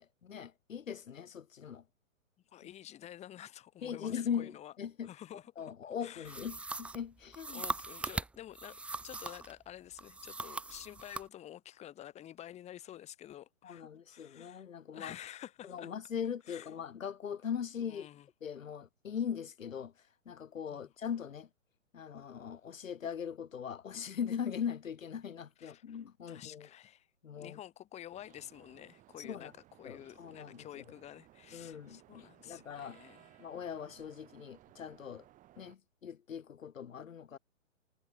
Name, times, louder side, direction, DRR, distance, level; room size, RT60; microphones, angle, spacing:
voice 1, 0.0-1.8 3.8-7.6 13.6-15.1 15.6-18.1 18.4-19.9 20.3-21.5 21.9-26.7 27.2-27.6 29.2-29.5 29.8-30.7 31.5-33.0 33.4-35.2 35.6-37.4, left 8 dB, 80° left, 1.2 m, -40 dB
voice 2, 2.5-4.7 5.0-5.7 6.0-6.4 7.5-14.7 14.9-15.9 16.5-16.7 17.8-18.3 20.7-20.9 25.6-26.0 26.3-27.1 27.4-29.5 29.8-33.5, left 12 dB, 15° left, 1.9 m, -50 dB
sound 1, 6.2-9.5 10.0-11.3, right 3 dB, 5° right, 0.8 m, -40 dB
sound 2, 28.1-35.8, right 14 dB, 20° right, 2.3 m, -61 dB
hypercardioid pair, 130°, 39 cm